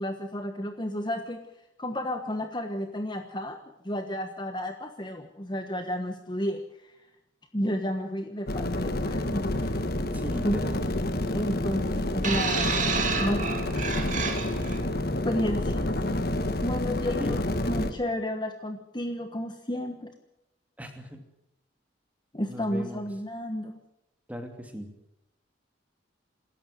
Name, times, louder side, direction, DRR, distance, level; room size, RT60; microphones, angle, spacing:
voice 1, 0.0-1.4 1.8-3.6 3.8-6.9 7.5-9.8 10.4-10.6 11.3-12.8 13.2-13.5 15.2-15.8 16.6-20.1 22.3-23.8, equal, 20° left, 6 dB, 1.2 m, -32 dB
sound 1, 8.5-17.9, left 1 dB, 50° left, 1.4 m, -29 dB
voice 2, 10.1-10.8 17.2-17.4 20.8-21.2 22.5-23.0 24.3-24.9, equal, 5° right, 5 dB, 2.6 m, -37 dB
sound 2, 12.2-14.8 15.7-15.9, right 5 dB, 40° right, 2.6 m, -30 dB
27.0 x 14.0 x 7.8 m, 0.88 s
head